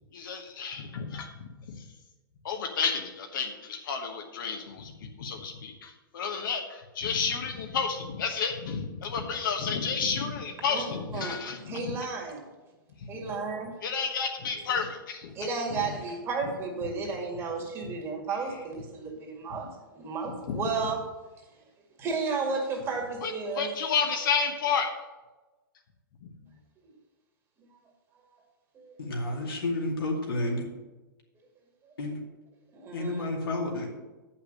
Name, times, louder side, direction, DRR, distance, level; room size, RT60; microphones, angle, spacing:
voice 1, 0.1-1.8 2.4-12.0 13.0-13.3 13.8-15.3 15.7-15.9 17.8-17.9 20.3-20.7 23.2-24.9 26.2-26.3, left 6 dB, 65° left, 3 dB, 1.2 m, -31 dB
voice 2, 11.1-12.4 13.1-13.7 14.6-14.8 15.3-21.0 22.0-23.7 26.8-26.9 28.7-28.9 31.8-31.9 32.7-33.3, right 4 dB, 20° right, 1 dB, 2.0 m, -33 dB
voice 3, 29.0-30.7 32.0-32.2 32.9-33.9, left 2 dB, 90° left, -1 dB, 2.5 m, -30 dB
8.0 x 5.8 x 6.5 m, 1.2 s
hypercardioid pair, 135°, 12 cm